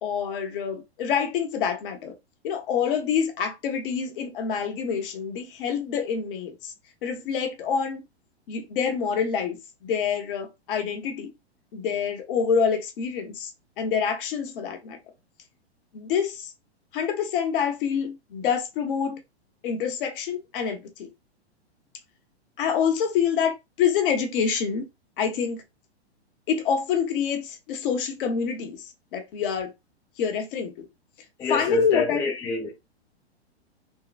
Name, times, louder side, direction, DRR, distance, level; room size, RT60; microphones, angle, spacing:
voice 1, 0.0-2.1 2.4-6.7 7.0-8.0 8.5-9.6 9.8-11.3 11.7-13.5 13.8-15.0 15.9-16.5 16.9-19.2 19.6-21.1 22.6-24.9 25.2-25.6 26.5-28.8 29.1-29.7 30.2-30.9 31.5-32.2, left 7 dB, 50° left, 1.0 m, -26 dB
voice 2, 31.4-32.7, left 2 dB, 10° left, 0.4 m, -26 dB
3.6 x 2.2 x 2.4 m
hypercardioid pair, 120°, 33 cm